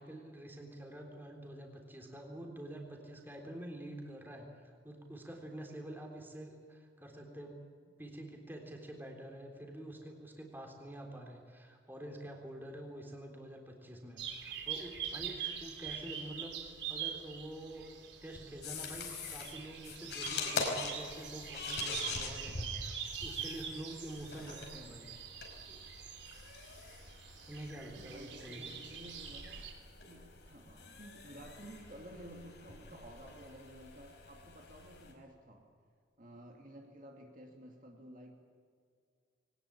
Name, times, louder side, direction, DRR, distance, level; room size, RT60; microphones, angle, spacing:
voice 1, 0.0-7.6 8.0-16.6 16.9-17.9 18.2-25.1 25.7-25.8 27.5-28.7, right 1 dB, 10° right, 1 dB, 3.5 m, -47 dB
sound 1, 14.2-29.7, right 8 dB, 80° right, 3.4 m, -44 dB
sound 2, 18.6-35.1, left 4 dB, 70° left, 5.0 m, -44 dB
voice 2, 27.8-29.7 30.1-35.6 36.2-38.3, equal, 45° right, 1 dB, 2.6 m, -53 dB
22.0 x 19.0 x 8.7 m, 2.2 s
head